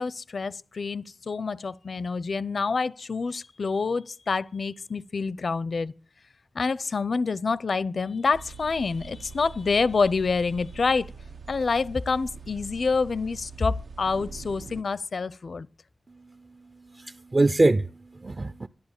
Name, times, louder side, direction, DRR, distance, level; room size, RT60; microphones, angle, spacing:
voice 1, 0.0-5.9 6.5-11.1 11.5-15.7, left 4 dB, 70° left, 0.6 m, -27 dB
sound 1, 8.3-14.8, right 4 dB, 80° right, 1.0 m, -43 dB
voice 2, 16.1-18.7, right 2 dB, 35° right, 0.6 m, -25 dB
12.0 x 11.5 x 8.1 m
wide cardioid pair, 105°, 0 cm